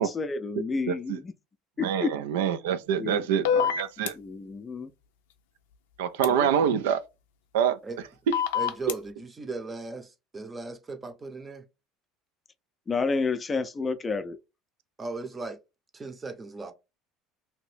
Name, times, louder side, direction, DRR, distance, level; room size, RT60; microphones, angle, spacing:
voice 1, 0.0-1.3 1.8-2.1 3.0-3.2 4.2-4.9 6.3-6.5 12.9-14.4, left 4 dB, 25° left, 0.4 m, -30 dB
voice 2, 0.9-1.2 1.8-4.1 6.0-7.0 7.5-7.8 8.3-8.4, right 8 dB, 90° right, 0.3 m, -26 dB
sound 1, 3.4-4.1 6.2-6.3 8.3-8.9, left 7 dB, 90° left, 0.4 m, -25 dB
voice 3, 8.5-11.6 15.0-15.6 15.9-16.7, right 3 dB, 20° right, 0.7 m, -37 dB
2.8 x 2.6 x 3.2 m
supercardioid pair, 100°, 0 cm